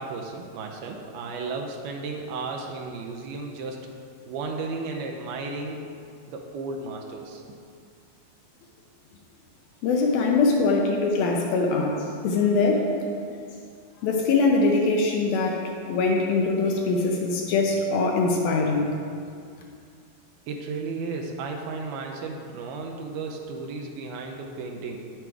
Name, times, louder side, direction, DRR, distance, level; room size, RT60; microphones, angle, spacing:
voice 1, 0.0-3.9 4.3-5.8 6.3-7.4 20.5-25.0, right 3 dB, 80° right, 1 dB, 2.4 m, -34 dB
voice 2, 9.8-12.9 14.0-15.6 15.9-19.0, left 3 dB, 75° left, 0 dB, 2.4 m, -22 dB
9.4 x 7.7 x 4.6 m, 2.3 s
omnidirectional pair, 4.7 m